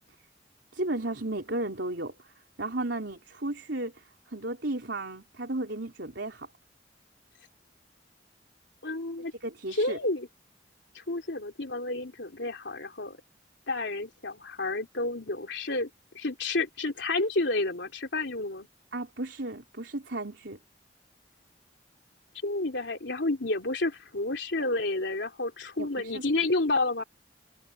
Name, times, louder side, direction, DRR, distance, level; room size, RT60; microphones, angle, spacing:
voice 1, 0.7-2.3 2.6-6.5 9.4-10.0 18.9-20.6 25.8-26.2, right 2 dB, 75° right, 3.9 m, -34 dB
voice 2, 8.8-9.3 9.7-10.3 10.9-13.2 13.7-15.9 16.1-18.7 22.4-27.0, left 2 dB, 75° left, 3.2 m, -30 dB
head